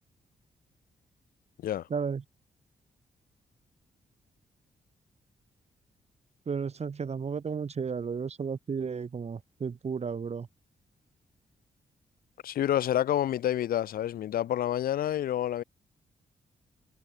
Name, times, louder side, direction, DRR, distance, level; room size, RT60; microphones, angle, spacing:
voice 1, 1.9-2.2 6.5-10.5, right 6 dB, 45° right, 1.8 m, -33 dB
voice 2, 12.4-15.6, left 11 dB, 85° left, 1.4 m, -28 dB
cardioid pair, 80°, 15 cm